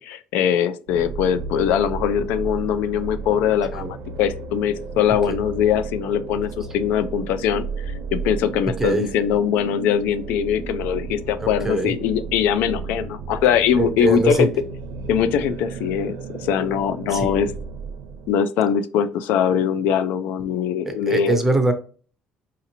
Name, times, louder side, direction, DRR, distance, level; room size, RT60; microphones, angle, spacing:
voice 1, 0.0-14.5 15.1-17.5 18.3-21.4, left 8 dB, 75° left, 11 dB, 0.4 m, -22 dB
sound 1, 0.9-18.3, right 4 dB, 65° right, 0.7 m, -34 dB
voice 2, 11.4-11.9 13.8-14.5 17.1-17.4 20.9-21.7, right 2 dB, 10° right, 7 dB, 0.5 m, -22 dB
4.9 x 2.9 x 2.6 m, 0.39 s
cardioid pair, 170°, 3 cm